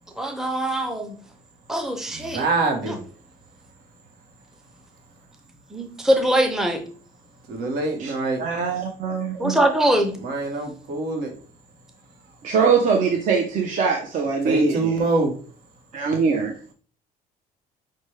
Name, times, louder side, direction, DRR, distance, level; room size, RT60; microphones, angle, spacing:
voice 1, 0.2-1.2 1.7-2.4 2.9-3.0 5.7-6.8 9.4-10.1, right 1 dB, 5° right, 5 dB, 0.6 m, -22 dB
voice 2, 2.1-3.0 7.5-8.4 10.2-11.3 14.4-15.3, right 3 dB, 75° right, 3 dB, 1.2 m, -24 dB
voice 3, 8.4-9.6 12.4-15.0 15.9-16.5, right 5 dB, 50° right, 1 dB, 0.6 m, -22 dB
6.0 x 2.2 x 3.2 m, 0.42 s
cardioid pair, 110°, 17 cm